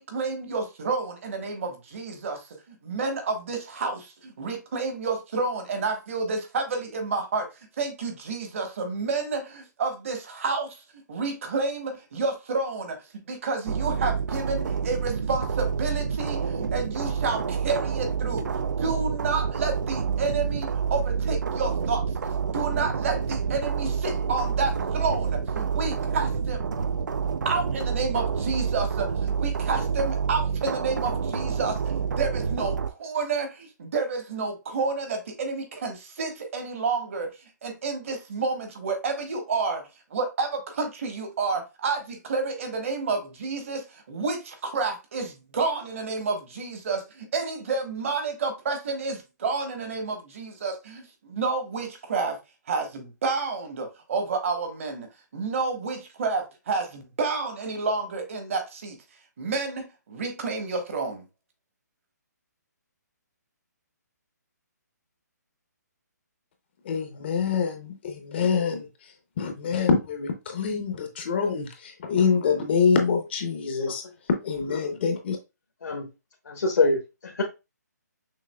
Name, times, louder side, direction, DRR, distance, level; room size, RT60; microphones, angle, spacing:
voice 1, 0.0-10.8 11.1-18.5 18.8-22.0 22.5-26.7 27.4-37.3 37.6-52.4 52.7-55.1 55.3-59.0 59.4-61.2, right 4 dB, 45° right, 1.2 m, -30 dB
sound 1, 13.7-32.9, right 6 dB, 85° right, 0.4 m, -28 dB
voice 2, 66.8-68.8 69.4-74.0 74.4-75.4, left 5 dB, 35° left, 0.6 m, -25 dB
voice 3, 76.4-77.4, left 3 dB, 80° left, 1.1 m, -25 dB
5.9 x 2.8 x 2.2 m
hypercardioid pair, 160°, 10 cm